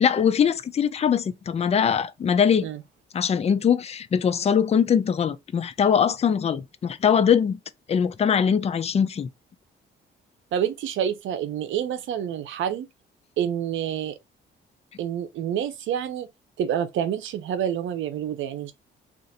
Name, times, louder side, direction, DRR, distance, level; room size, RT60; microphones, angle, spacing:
voice 1, 0.0-2.7 3.1-7.6 7.9-9.3, left 7 dB, 30° left, 0.4 m, -22 dB
voice 2, 10.5-12.9 13.4-14.1 15.0-16.3 16.6-18.7, right 9 dB, 75° right, 0.7 m, -28 dB
2.5 x 2.5 x 4.1 m
cardioid pair, 90°, 20 cm